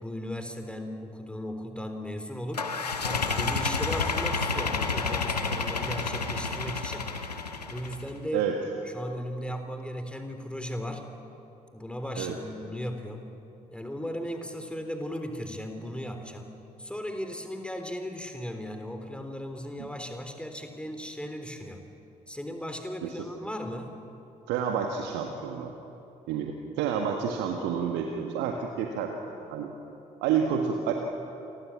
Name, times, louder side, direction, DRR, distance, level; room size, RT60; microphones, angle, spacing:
voice 1, 0.0-2.7 3.0-7.1 7.7-8.5 8.8-11.0 11.7-13.3 13.7-16.5 16.8-21.8 22.3-23.9 30.1-30.2, equal, 5° left, 6 dB, 3.6 m, -36 dB
sound 1, 2.5-8.1, left 4 dB, 85° left, 1.1 m, -30 dB
voice 2, 24.5-25.7 26.3-29.7 30.2-30.9, right 7 dB, 65° right, 3 dB, 1.7 m, -29 dB
28.5 x 22.0 x 7.3 m, 2.9 s
figure-of-eight pair, 45°, 20 cm